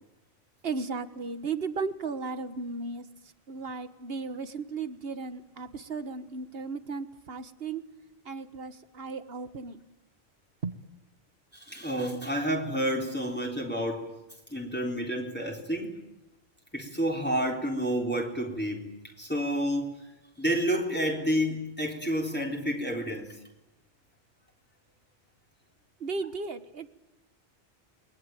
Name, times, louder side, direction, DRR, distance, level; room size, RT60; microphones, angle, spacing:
voice 1, 0.6-3.1 3.5-7.8 8.2-9.9 10.6-10.8 26.0-26.9, right 4 dB, 65° right, 11 dB, 1.7 m, -35 dB
voice 2, 11.7-14.1 14.5-16.0 16.7-18.9 19.2-20.0 20.4-23.4, equal, 10° left, 0 dB, 3.9 m, -29 dB
29.0 x 22.5 x 9.1 m, 0.95 s
omnidirectional pair, 1.1 m